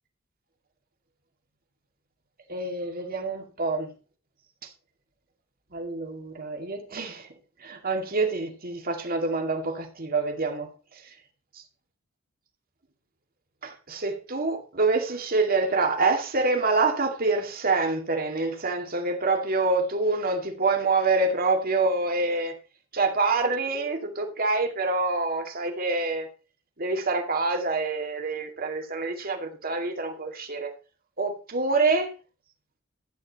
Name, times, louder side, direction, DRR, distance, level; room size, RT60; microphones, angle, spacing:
voice 1, 2.5-3.9 5.7-7.3 7.6-10.7 13.6-22.6 22.9-26.3 26.8-30.7 31.2-32.1, right 3 dB, 45° right, 2.3 m, -26 dB
13.0 x 9.5 x 4.1 m
head